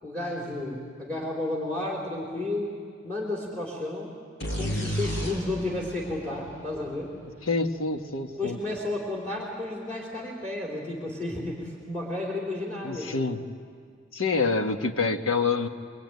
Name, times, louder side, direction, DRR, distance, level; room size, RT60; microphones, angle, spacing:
voice 1, 0.0-2.7 3.0-4.1 4.5-7.1 8.4-13.2, left 2 dB, 5° left, -3 dB, 3.9 m, -32 dB
sound 1, 4.4-8.1, equal, 60° left, 5.9 m, -34 dB
voice 2, 7.4-8.6 12.8-13.4 14.1-15.7, left 4 dB, 90° left, 5 dB, 1.4 m, -26 dB
25.0 x 22.5 x 9.4 m, 2.1 s
head